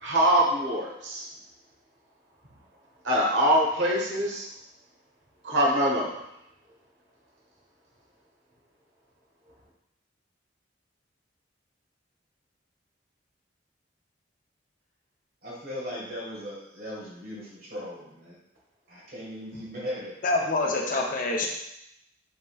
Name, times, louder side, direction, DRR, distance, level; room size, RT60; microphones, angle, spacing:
voice 1, 0.0-1.2 3.0-4.5 5.4-6.1, right 1 dB, 70° right, -3 dB, 1.1 m, -23 dB
voice 2, 15.4-18.4 18.9-20.2 20.7-21.0, equal, 50° right, -5 dB, 1.7 m, -38 dB
voice 3, 20.2-21.5, left 2 dB, 45° left, 0 dB, 0.7 m, -26 dB
5.5 x 3.6 x 2.4 m, 0.82 s
head